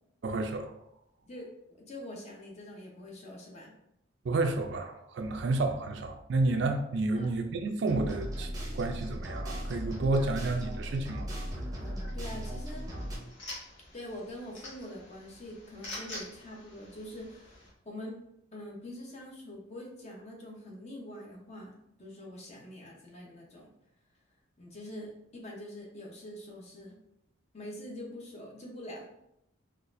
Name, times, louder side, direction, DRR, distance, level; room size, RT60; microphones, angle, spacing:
voice 1, 0.2-0.7 4.2-11.3, right 2 dB, 60° right, 0.4 m, -30 dB
voice 2, 1.2-3.7 7.1-7.3 11.8-12.9 13.9-18.2 18.5-23.7 24.6-27.0 27.5-29.1, left 1 dB, 35° left, 0.7 m, -44 dB
sound 1, 7.9-13.2, equal, 20° right, 0.6 m, -37 dB
sound 2, 12.3-17.7, left 1 dB, 70° left, 1.1 m, -47 dB
3.9 x 2.4 x 2.5 m
head